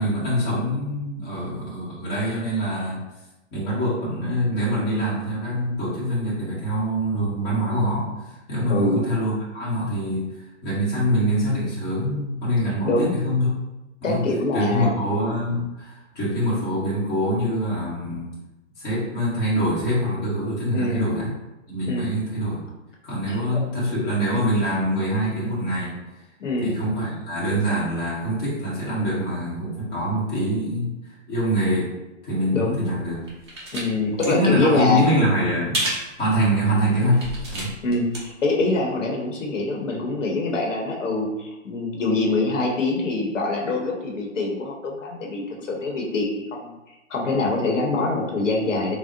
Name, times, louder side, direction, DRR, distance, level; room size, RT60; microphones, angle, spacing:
voice 1, 0.0-3.0 3.5-8.1 8.5-10.2 10.6-13.5 14.0-14.2 14.5-18.3 18.8-21.3 21.7-22.6 23.0-25.9 26.6-30.9 31.3-31.9 32.2-33.2 34.2-37.2 37.5-37.8, equal, 15° left, -10 dB, 0.8 m, -24 dB
voice 2, 8.7-9.0 12.7-13.1 14.0-14.9 20.7-21.2 21.9-22.1 26.4-26.7 32.5-32.9 33.7-35.2 37.8-46.8 47.1-49.0, left 2 dB, 70° left, 0 dB, 0.9 m, -24 dB
sound 1, 32.8-33.9 34.1-34.3 35.7-36.1 36.6-36.7 37.1-38.2 38.5-38.6, right 1 dB, 25° right, 0.4 m, -29 dB
3.5 x 2.0 x 2.6 m, 1.0 s
hypercardioid pair, 150°, 39 cm